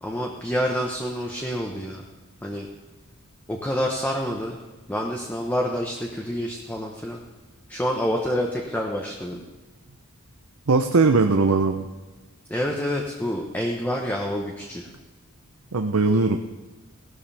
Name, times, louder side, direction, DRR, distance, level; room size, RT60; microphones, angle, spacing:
voice 1, 0.0-2.0 2.4-2.7 3.5-4.6 4.9-7.2 7.7-9.4 12.5-14.9, equal, 10° left, 0 dB, 1.1 m, -27 dB
voice 2, 10.7-11.9 15.7-16.4, right 3 dB, 75° right, 6 dB, 0.7 m, -19 dB
17.0 x 12.5 x 3.5 m, 1.3 s
head